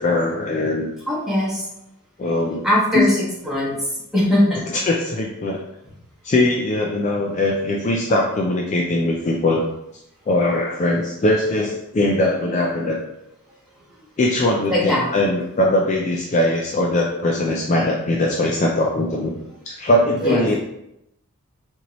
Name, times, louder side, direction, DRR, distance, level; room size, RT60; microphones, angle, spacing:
voice 1, 0.0-0.9 2.2-2.7 2.9-3.1 4.9-5.6 6.2-9.7 10.3-13.0 14.2-19.4 19.7-20.6, left 1 dB, 35° left, -1 dB, 0.3 m, -21 dB
voice 2, 1.1-1.6 2.6-3.2 3.4-4.6 14.7-15.1 20.2-20.5, left 1 dB, ahead, -8 dB, 1.1 m, -20 dB
4.4 x 2.7 x 2.9 m, 0.83 s
head